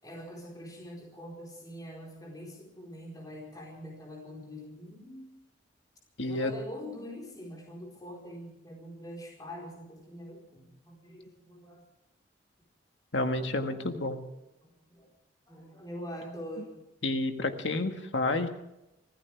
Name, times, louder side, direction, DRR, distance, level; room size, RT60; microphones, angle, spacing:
voice 1, 0.0-5.3 6.2-11.9 13.3-14.0 14.3-15.1 15.5-16.8, equal, 20° left, -2 dB, 4.5 m, -44 dB
voice 2, 6.2-6.5 13.1-14.2 17.0-18.5, left 2 dB, 75° left, 6 dB, 1.7 m, -30 dB
24.5 x 16.5 x 3.5 m, 0.91 s
head